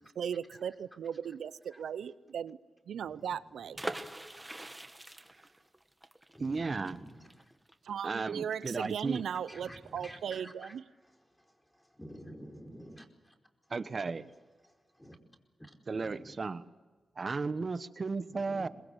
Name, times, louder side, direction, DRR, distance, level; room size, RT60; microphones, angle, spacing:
voice 1, 0.2-2.6 2.9-3.8 7.9-10.8, right 8 dB, 90° right, 17 dB, 0.7 m, -37 dB
voice 2, 3.0-5.7 6.3-7.6 9.5-13.4 14.6-15.2 15.6-16.4 18.3-18.7, equal, 10° left, 3 dB, 4.8 m, -52 dB
sound 1, 3.7-9.4 9.7-9.8 10.0-10.3, right 1 dB, 15° right, 1.8 m, -43 dB
voice 3, 6.4-7.0 8.0-9.2 13.7-14.3 15.9-16.6 17.2-18.7, right 4 dB, 50° right, 14 dB, 1.2 m, -34 dB
24.0 x 21.0 x 8.2 m, 1.4 s
cardioid pair, 60°, 0 cm